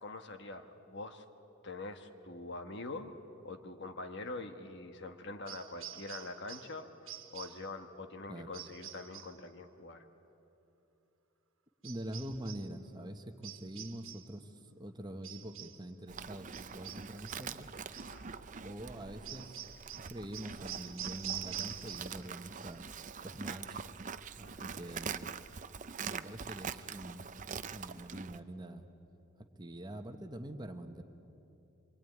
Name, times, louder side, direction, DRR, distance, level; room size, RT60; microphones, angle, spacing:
voice 1, 0.0-1.2 1.6-3.1 3.4-10.0 18.1-18.5 24.4-24.7, left 2 dB, 55° left, 7 dB, 1.5 m, -44 dB
sound 1, 5.5-6.8 7.1-7.7 8.5-9.4 11.8-12.7 13.4-14.4 15.2-15.9 16.5-17.5 17.9-18.2 19.2-22.3 22.6-23.1, right 11 dB, 75° right, 1.6 m, -46 dB
voice 2, 11.8-17.7 18.6-19.6 20.1-22.9 23.2-23.8 24.4-25.4 26.0-28.8 29.6-31.0, right 1 dB, 20° right, 6 dB, 1.2 m, -45 dB
Livestock farm animals working animals, 16.1-28.4, right 6 dB, 35° right, 0.6 m, -44 dB
25.5 x 23.5 x 9.4 m, 2.9 s
head